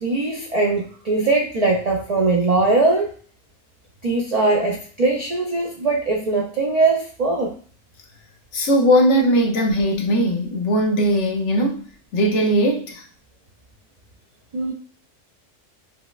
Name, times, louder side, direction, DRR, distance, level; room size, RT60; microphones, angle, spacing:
voice 1, 0.0-3.1 4.0-7.6 14.5-14.7, right 3 dB, 75° right, 0 dB, 0.3 m, -20 dB
voice 2, 8.5-11.9 12.1-13.0, equal, 65° left, 1 dB, 1.0 m, -19 dB
5.4 x 2.1 x 2.3 m, 0.43 s
omnidirectional pair, 1.4 m